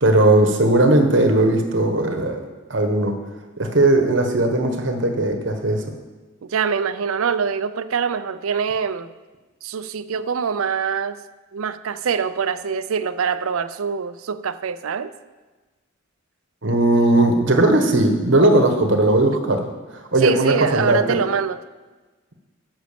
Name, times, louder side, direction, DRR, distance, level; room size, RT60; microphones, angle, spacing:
voice 1, 0.0-2.4 2.7-3.1 3.6-5.8 16.6-19.7 19.9-21.2, right 2 dB, 60° right, 5 dB, 1.3 m, -18 dB
voice 2, 6.4-9.1 9.6-11.2 11.5-15.1 20.2-21.6, right 6 dB, 85° right, 14 dB, 0.5 m, -24 dB
10.0 x 6.3 x 6.8 m, 1.3 s
head